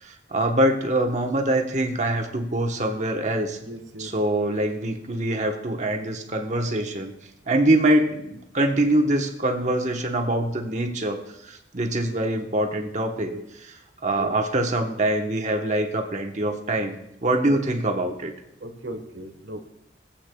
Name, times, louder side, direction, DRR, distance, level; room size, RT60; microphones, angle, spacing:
voice 1, 0.0-3.6 4.0-7.1 7.5-13.3 13.6-18.3, right 1 dB, 40° right, 3 dB, 1.1 m, -24 dB
voice 2, 3.6-4.1 12.1-12.2 13.2-13.4 14.2-14.3 17.4-17.6 18.6-19.7, right 1 dB, 80° right, 6 dB, 1.4 m, -37 dB
18.0 x 8.4 x 2.3 m, 0.81 s
head